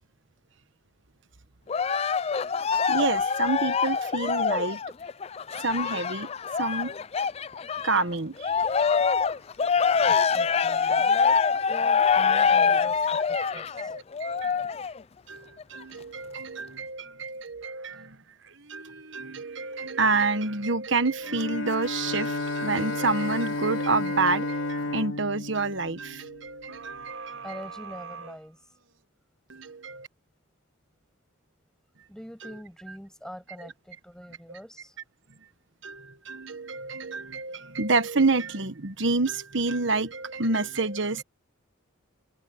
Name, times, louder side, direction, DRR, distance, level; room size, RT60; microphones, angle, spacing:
Cheering, 1.7-8.0 8.4-15.0 15.6-15.7, left 6 dB, 30° left, 0.3 m, -25 dB
voice 1, 2.9-4.8 5.6-6.3 6.6-6.9 7.8-8.6 13.4-13.5 13.9-14.7 15.3-18.2 18.7-27.6 29.5-30.1 32.4-32.5 33.6-33.7 35.8-41.2, right 3 dB, 60° right, 1.3 m, -28 dB
voice 2, 10.0-11.4 11.7-13.9 17.9-18.0 27.4-28.6 32.1-35.0, equal, 5° left, 7.7 m, -43 dB
sound 1, 17.6-20.8 21.3-24.9 26.7-29.0 29.5-29.6, right 5 dB, 75° right, 5.9 m, -47 dB
Bowed string instrument, 21.2-26.8, left 2 dB, 70° left, 2.5 m, -32 dB
head